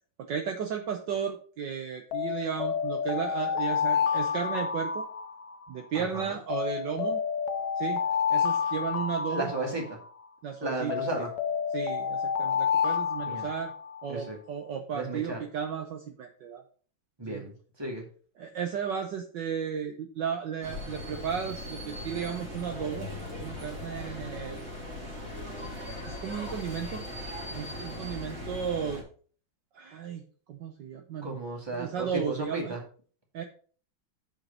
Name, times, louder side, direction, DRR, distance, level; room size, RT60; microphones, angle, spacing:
voice 1, 0.2-5.0 5.7-7.2 7.8-8.0 8.3-9.5 10.4-11.3 11.7-13.7 14.0-16.6 17.3-17.4 18.4-23.1 23.4-24.6 25.9-27.1 27.5-29.0 29.7-30.2 30.5-31.3 31.7-32.8 33.3-33.4, right 7 dB, 65° right, 4 dB, 1.4 m, -34 dB
Alarm, 2.1-5.8 6.5-10.2 10.9-14.1, left 7 dB, 65° left, 1.0 m, -29 dB
voice 2, 5.9-6.4 9.3-10.0 10.6-11.3 13.3-13.5 14.1-14.4 14.9-15.4 17.2-18.1 31.2-32.8, right 2 dB, 10° right, 1 dB, 1.9 m, -34 dB
sound 1, 20.6-29.0, left 1 dB, 30° right, 3.0 m, -39 dB
7.3 x 5.5 x 5.2 m, 0.42 s
omnidirectional pair, 2.3 m